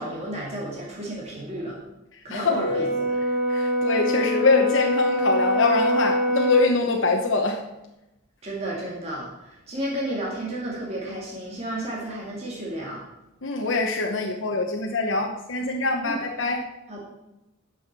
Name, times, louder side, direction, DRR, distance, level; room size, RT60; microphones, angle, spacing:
voice 1, 0.0-1.8 2.2-2.9 8.4-13.0 16.0-16.2 16.9-17.0, right 1 dB, 30° right, -4 dB, 2.3 m, -32 dB
Brass instrument, 2.4-6.7, equal, 40° left, 3.5 m, -24 dB
voice 2, 3.5-7.6 13.4-16.6, left 3 dB, 65° left, 0 dB, 1.0 m, -23 dB
10.0 x 6.4 x 6.0 m, 0.93 s
head